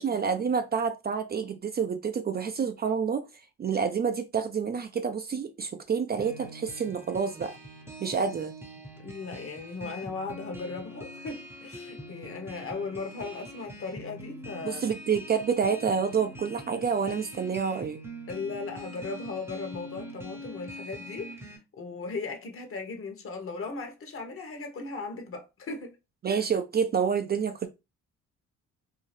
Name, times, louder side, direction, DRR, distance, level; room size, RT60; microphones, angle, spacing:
voice 1, 0.0-3.2 3.6-7.5 8.0-8.5 14.6-18.0 26.2-27.7, right 6 dB, 35° right, 0.4 m, -28 dB
sound 1, 6.2-21.6, equal, 10° right, 0.7 m, -44 dB
voice 2, 9.0-14.8 18.3-21.5 21.8-26.0, left 4 dB, 45° left, 0.9 m, -37 dB
2.7 x 2.4 x 3.2 m
cardioid pair, 90°, 30 cm